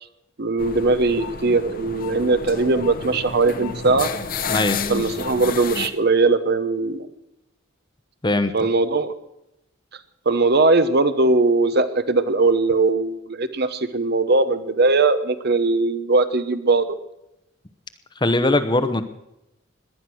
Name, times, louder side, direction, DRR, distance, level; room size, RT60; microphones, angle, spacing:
voice 1, 0.4-4.1 4.9-7.1 8.5-9.1 10.3-16.9, right 3 dB, 55° right, 11 dB, 1.0 m, -20 dB
sound 1, 0.6-5.9, left 4 dB, 45° left, 1.0 m, -30 dB
voice 2, 4.5-4.8 8.2-8.5 18.2-19.0, left 2 dB, 25° left, 11 dB, 0.9 m, -20 dB
18.5 x 11.0 x 6.2 m, 0.87 s
head